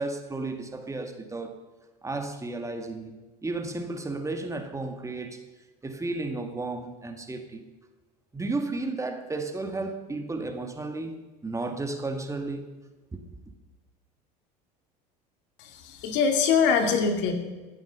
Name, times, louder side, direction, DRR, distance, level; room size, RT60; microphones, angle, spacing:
voice 1, 0.0-1.6 2.0-3.2 3.4-5.4 5.8-7.6 8.3-12.6, right 3 dB, 15° right, 1.8 m, -33 dB
voice 2, 15.6-17.3, left 6 dB, 60° left, 2.2 m, -23 dB
15.5 x 8.2 x 6.8 m
hypercardioid pair, 80°, 21 cm